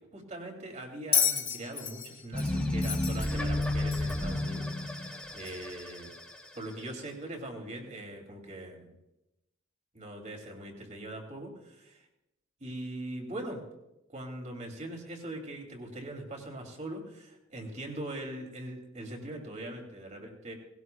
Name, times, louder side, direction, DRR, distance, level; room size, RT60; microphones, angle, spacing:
voice 1, 0.1-6.1 6.5-8.9 9.9-12.0 12.6-13.6 14.1-20.5, right 1 dB, 35° right, 2 dB, 2.6 m, -41 dB
Bell, 1.1-4.3 5.5-5.6, left 7 dB, 30° left, 2.0 m, -31 dB
sound 1, 2.3-6.7, left 1 dB, 5° left, 1.9 m, -32 dB
19.0 x 17.0 x 2.3 m, 0.92 s
head